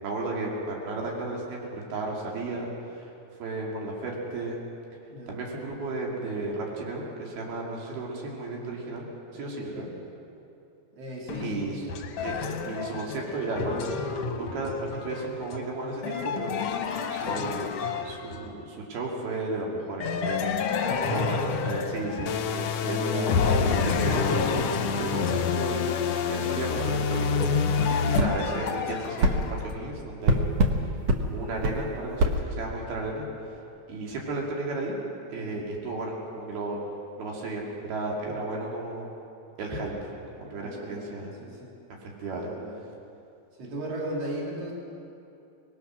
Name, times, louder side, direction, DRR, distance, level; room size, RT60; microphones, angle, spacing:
voice 1, 0.0-3.1 3.4-4.6 5.3-9.1 9.3-9.9 11.4-11.9 12.2-12.4 12.6-13.8 14.4-17.7 18.0-20.8 21.0-23.3 23.8-27.7 28.0-30.6 31.2-33.6 33.9-35.0 35.3-36.8 37.2-39.1 39.6-41.3 42.0-42.5, right 2 dB, 85° right, -2 dB, 4.5 m, -34 dB
voice 2, 9.3-9.9 10.9-11.9 20.8-21.0 40.6-41.1 41.4-41.7 42.3-42.8 43.6-44.7, right 1 dB, 40° right, -3 dB, 4.2 m, -37 dB
sound 1, 11.3-18.7 20.0-22.9 23.3-29.7, left 5 dB, 60° left, 1.7 m, -30 dB
sound 2, 22.3-28.2, left 6 dB, 85° left, 1.4 m, -28 dB
sound 3, 28.2-28.3 29.2-29.4 30.3-30.8 31.1-31.2 31.6-31.8 32.2-32.4, right 1 dB, 60° right, 1.9 m, -22 dB
25.5 x 20.0 x 6.2 m, 2.7 s
omnidirectional pair, 4.3 m